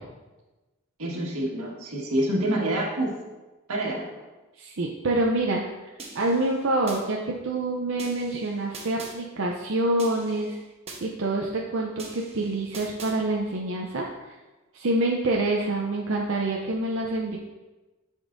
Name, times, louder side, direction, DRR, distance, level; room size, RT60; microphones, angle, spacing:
voice 1, 1.0-3.2 3.7-4.2, right 1 dB, 85° right, -2 dB, 1.6 m, -27 dB
voice 2, 4.6-5.6 6.1-10.6 11.0-14.0 14.7-17.4, right 2 dB, 60° right, -1 dB, 0.6 m, -26 dB
sound 1, 6.0-7.0 8.0-9.1 10.0-11.0 12.0-13.1, right 3 dB, 30° right, 1.0 m, -42 dB
10.5 x 5.3 x 2.6 m, 1.1 s
head